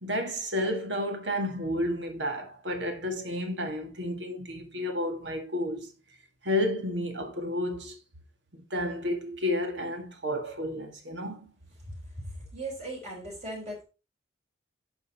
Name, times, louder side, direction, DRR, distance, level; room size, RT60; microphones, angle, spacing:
voice 1, 0.0-5.9 6.4-8.0 8.5-11.5, left 1 dB, 65° right, 1.8 m, -31 dB
voice 2, 12.5-13.8, right 2 dB, 35° right, 3.9 m, -37 dB
10.5 x 5.3 x 4.1 m
head